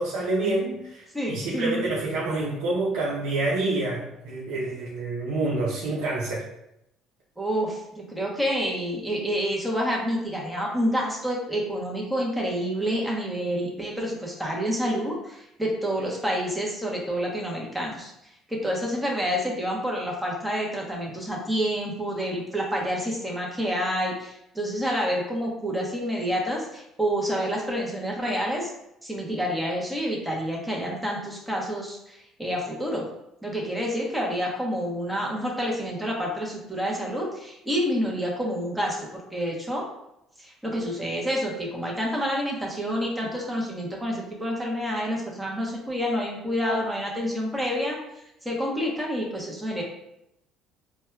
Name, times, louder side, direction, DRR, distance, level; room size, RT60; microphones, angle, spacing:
voice 1, 0.0-6.5, right 2 dB, 85° right, -6 dB, 0.6 m, -27 dB
voice 2, 1.1-1.9 7.4-18.1 18.5-28.7 29.0-33.0 33.4-39.9 40.4-48.0 48.4-49.8, equal, 5° right, -3 dB, 0.9 m, -28 dB
4.3 x 2.2 x 2.2 m, 0.83 s
cardioid pair, 110°, 0 cm